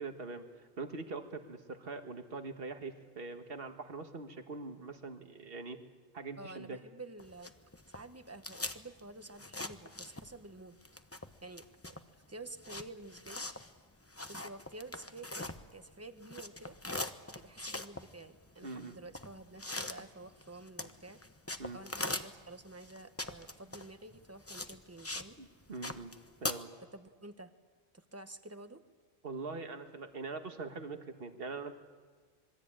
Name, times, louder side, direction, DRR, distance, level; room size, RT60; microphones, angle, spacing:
voice 1, 0.0-5.8 6.1-6.8 18.6-19.0 21.6-21.8 25.4-26.1 26.4-26.7 29.2-31.7, right 3 dB, 60° right, 6 dB, 1.8 m, -43 dB
voice 2, 6.4-7.5 7.9-10.8 11.4-12.0 12.3-13.5 14.3-16.8 17.3-21.2 21.7-25.4 26.9-27.5 27.9-28.8, right 2 dB, 15° right, 9 dB, 1.1 m, -50 dB
sound 1, 7.2-10.5 10.8-15.9 16.2-25.3 25.6-26.5, left 2 dB, 15° left, 0.9 m, -42 dB
26.0 x 22.0 x 8.9 m, 1.5 s
omnidirectional pair, 1.1 m